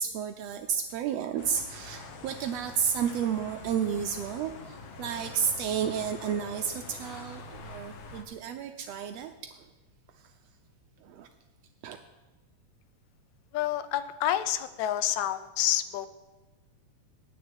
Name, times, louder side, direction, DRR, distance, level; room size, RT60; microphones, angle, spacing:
voice 1, 0.0-9.5 11.0-11.3 11.8-12.0, right 7 dB, 80° right, 7 dB, 1.5 m, -32 dB
sound 1, 1.4-8.2, left 3 dB, 60° left, 1.7 m, -45 dB
voice 2, 13.5-16.1, left 12 dB, 80° left, 13 dB, 1.8 m, -28 dB
9.4 x 6.6 x 8.1 m, 1.2 s
omnidirectional pair, 3.5 m